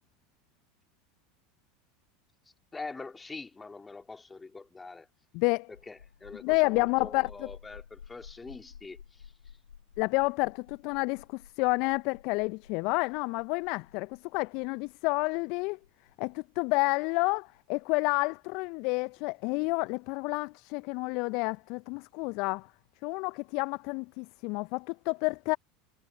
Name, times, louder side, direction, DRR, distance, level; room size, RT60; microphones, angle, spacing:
voice 1, 2.7-5.1 5.9-9.3, left 3 dB, 15° left, 3.1 m, -44 dB
voice 2, 5.3-5.7 6.4-7.3 10.0-15.8 16.2-22.7 23.0-25.6, left 29 dB, 55° left, 0.8 m, -29 dB
sound 1, 5.7-19.0, left 7 dB, 80° left, 2.9 m, -53 dB
figure-of-eight pair, 80°, 0 cm